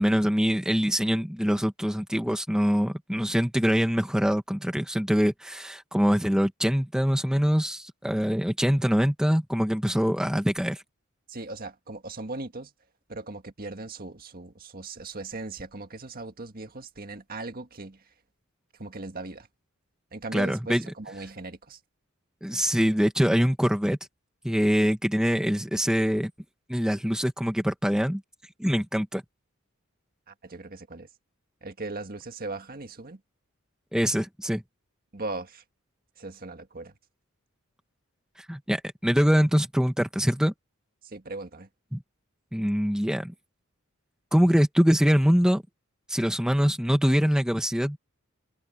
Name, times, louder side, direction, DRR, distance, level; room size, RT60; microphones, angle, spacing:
voice 1, 0.0-10.8 20.3-20.8 22.4-24.0 24.4-26.3 26.7-28.2 28.6-29.2 33.9-34.6 38.5-40.5 41.9-42.0 42.5-43.3 44.3-45.6 46.1-48.0, equal, 5° right, 1.1 m, -24 dB
voice 2, 11.3-12.7 13.1-18.0 18.8-19.5 20.1-21.8 30.3-31.1 31.6-33.2 35.1-35.6 36.2-36.9 41.0-41.7, right 2 dB, 45° right, 1.8 m, -38 dB
head